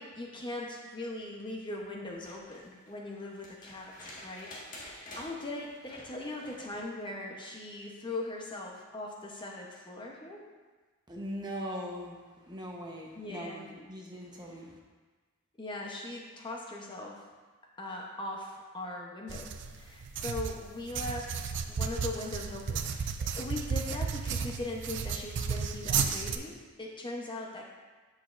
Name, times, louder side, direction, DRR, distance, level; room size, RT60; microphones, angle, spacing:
voice 1, 0.0-10.4 13.2-13.7 15.6-17.2 17.8-27.7, left 2 dB, 20° left, -1 dB, 0.8 m, -40 dB
sound 1, 2.1-6.9 8.5-8.6, left 1 dB, 40° left, 1.6 m, -49 dB
voice 2, 11.1-14.8, equal, 20° right, -1 dB, 0.9 m, -41 dB
sound 2, 19.3-26.4, right 6 dB, 55° right, 0.4 m, -33 dB
8.4 x 7.2 x 2.5 m, 1.3 s
head